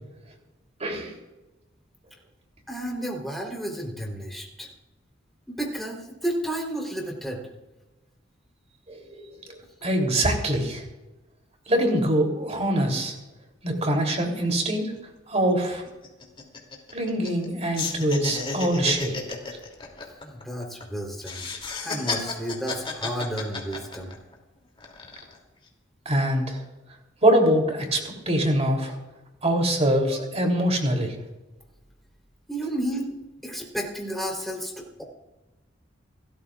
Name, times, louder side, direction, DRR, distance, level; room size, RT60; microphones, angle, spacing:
voice 1, 0.8-1.1 8.9-9.3 9.8-10.8 11.7-13.1 13.6-14.9 15.3-15.8 16.9-19.2 26.0-26.6 27.2-29.0 29.4-31.2, right 1 dB, 35° right, 2 dB, 3.3 m, -24 dB
voice 2, 2.7-4.7 5.5-7.4 20.2-21.5 21.8-24.2 30.1-30.2 32.5-33.2 33.4-35.0, right 1 dB, ahead, -1 dB, 3.7 m, -32 dB
sound 1, 15.0-15.1 15.3-15.5 15.9-17.5 17.7-20.8 21.2-24.3 24.8-25.4, left 4 dB, 30° left, 2.8 m, -33 dB
29.5 x 13.5 x 2.5 m, 1.1 s
head